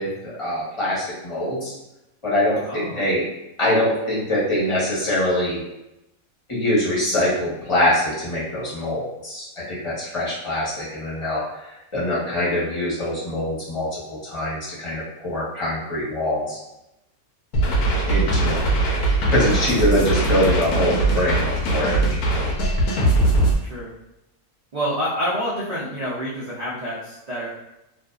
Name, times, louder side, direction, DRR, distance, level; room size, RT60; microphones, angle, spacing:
voice 1, 0.0-1.7 2.2-3.2 3.6-5.6 6.5-11.4 11.9-16.6 18.1-22.0, left 1 dB, 25° left, -8 dB, 0.9 m, -24 dB
voice 2, 2.6-3.1 17.6-18.0 18.4-18.8 23.6-23.9 24.7-27.5, equal, 80° right, -8 dB, 0.3 m, -28 dB
sound 1, 17.5-23.5, right 2 dB, 90° left, 1.1 m, -20 dB
2.5 x 2.4 x 2.3 m, 0.90 s
omnidirectional pair, 1.5 m